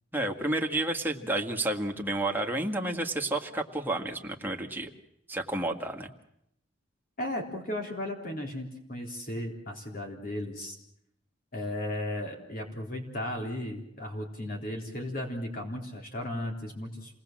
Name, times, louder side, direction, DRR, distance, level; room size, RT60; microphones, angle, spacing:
voice 1, 0.1-4.9 5.3-6.1, right 1 dB, 10° right, 3 dB, 1.9 m, -30 dB
voice 2, 7.2-10.8 11.5-17.2, left 1 dB, 45° left, 1 dB, 3.9 m, -35 dB
28.5 x 19.5 x 7.5 m, 0.79 s
head